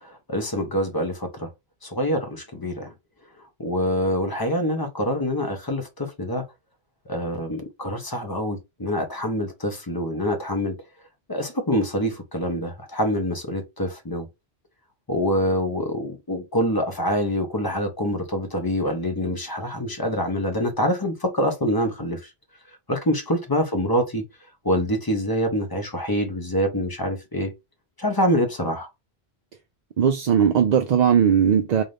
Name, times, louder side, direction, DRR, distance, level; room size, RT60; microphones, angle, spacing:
voice 1, 0.0-1.5 1.8-2.9 3.6-6.4 7.1-10.8 11.3-14.3 15.1-22.2 22.9-24.2 24.6-27.5 28.0-28.9, equal, 25° left, 0.8 m, -25 dB
voice 2, 30.0-31.8, right 8 dB, 55° right, 0.5 m, -18 dB
3.9 x 2.6 x 3.3 m
omnidirectional pair, 1.1 m